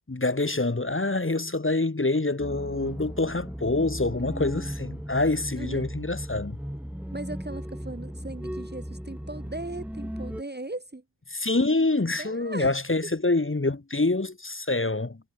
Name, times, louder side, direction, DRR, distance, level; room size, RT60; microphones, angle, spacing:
voice 1, 0.1-6.6 11.3-15.2, left 2 dB, 25° left, 1.9 m, -26 dB
sound 1, 2.4-10.4, equal, 5° right, 5.1 m, -36 dB
voice 2, 5.6-5.9 7.1-11.0 12.2-12.7, right 2 dB, 20° right, 1.6 m, -38 dB
cardioid pair, 40°, 48 cm